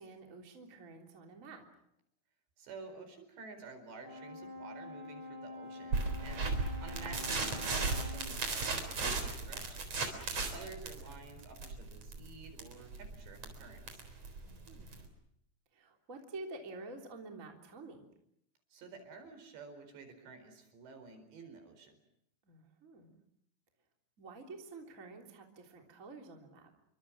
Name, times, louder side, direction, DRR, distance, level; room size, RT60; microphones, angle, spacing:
voice 1, 0.0-1.7 10.3-10.7 14.4-14.9 15.7-18.1 22.4-23.2 24.2-26.7, right 3 dB, 20° right, 2 dB, 2.9 m, -49 dB
voice 2, 2.6-9.8 10.5-14.0 18.7-22.0, right 4 dB, 65° right, 7 dB, 6.6 m, -51 dB
Brass instrument, 4.0-8.4, left 2 dB, 20° left, 6.6 m, -47 dB
sound 1, 5.9-15.1, right 4 dB, 35° right, 4.5 m, -36 dB
29.5 x 24.5 x 6.1 m, 0.75 s
omnidirectional pair, 5.4 m